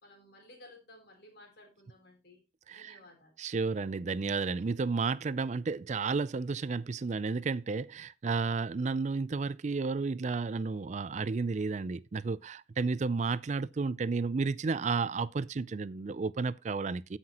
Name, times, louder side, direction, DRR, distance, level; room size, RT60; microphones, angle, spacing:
voice 1, 0.0-2.4 2.7-3.4, left 1 dB, 60° left, 3.7 m, -56 dB
voice 2, 2.7-3.0 3.4-17.2, right 4 dB, 40° right, 0.4 m, -32 dB
15.0 x 5.8 x 2.9 m
head